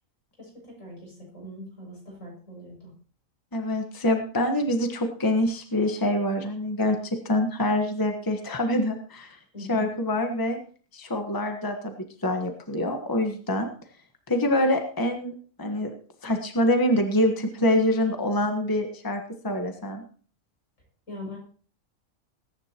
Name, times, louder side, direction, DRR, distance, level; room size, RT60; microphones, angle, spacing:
voice 1, 0.4-3.0 9.5-10.0 21.1-21.4, left 1 dB, 75° left, -2 dB, 7.3 m, -41 dB
voice 2, 3.5-7.0 7.2-9.3 9.7-10.6 10.9-11.9 12.2-13.7 14.3-15.3 15.6-15.9 16.2-20.0, left 1 dB, 15° left, 4 dB, 1.4 m, -25 dB
21.0 x 10.5 x 3.0 m, 0.42 s
omnidirectional pair, 1.4 m